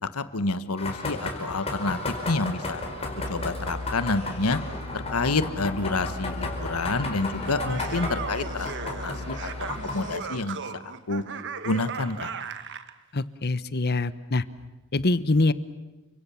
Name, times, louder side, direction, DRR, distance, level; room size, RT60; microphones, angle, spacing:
voice 1, 0.0-2.8 3.3-4.6 4.9-8.7 9.0-11.2 11.6-12.3, left 3 dB, 85° left, 12 dB, 1.4 m, -28 dB
sound 1, 0.8-10.2, left 2 dB, 30° left, 4.7 m, -34 dB
sound 2, 2.8-9.8, left 2 dB, 80° right, 1.9 m, -38 dB
Laughter, 7.3-12.9, right 5 dB, 55° right, 1.3 m, -36 dB
voice 2, 13.1-14.4 14.9-15.5, left 2 dB, 50° left, 15 dB, 1.0 m, -24 dB
30.0 x 25.0 x 7.2 m, 1.1 s
head